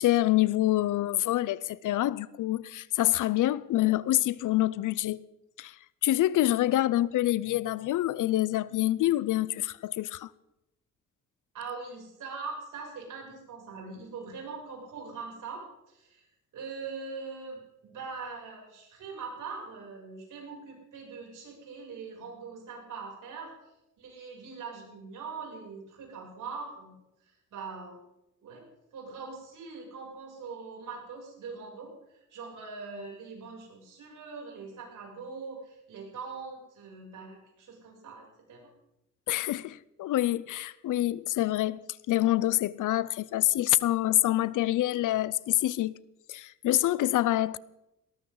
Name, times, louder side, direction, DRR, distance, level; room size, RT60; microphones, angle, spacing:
voice 1, 0.0-5.2 5.6-10.3 39.3-41.8 42.1-45.9 46.3-47.6, left 15 dB, 70° left, 0.6 m, -26 dB
voice 2, 11.5-16.3 16.5-23.5 24.0-26.9 27.2-28.0 28.4-28.6 28.9-38.7, right 4 dB, 70° right, 7.5 m, -42 dB
19.5 x 18.5 x 4.0 m
cardioid pair, 110°, 32 cm